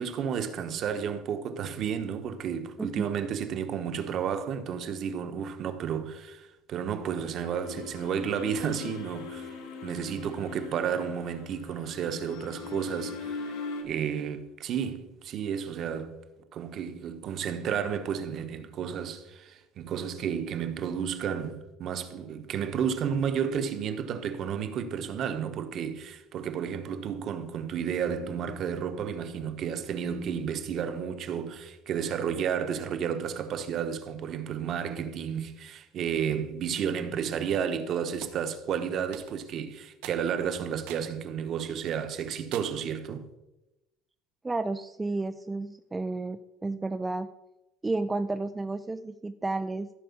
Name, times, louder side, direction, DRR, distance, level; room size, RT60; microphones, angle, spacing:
voice 1, 0.0-9.5 9.8-16.2 16.5-43.3, right 7 dB, 35° right, 1.0 m, -32 dB
sound 1, 6.8-13.8, left 4 dB, 80° left, 2.7 m, -40 dB
sound 2, 38.2-38.4 39.1-39.5 40.0-40.2 40.9-41.1 41.6-41.7 42.5-42.9, right 11 dB, 80° right, 1.1 m, -44 dB
voice 2, 44.4-47.3 47.8-49.9, right 2 dB, 10° right, 0.3 m, -32 dB
14.5 x 4.9 x 7.1 m
cardioid pair, 165°, 0 cm